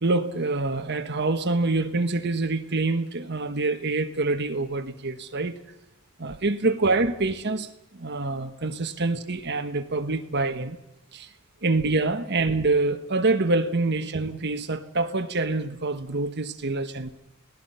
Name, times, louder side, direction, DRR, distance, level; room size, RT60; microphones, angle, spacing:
voice 1, 0.0-5.6 6.2-10.8 11.1-11.3 11.6-17.1, right 3 dB, 50° right, 1.4 m, -26 dB
29.5 x 19.0 x 5.7 m
head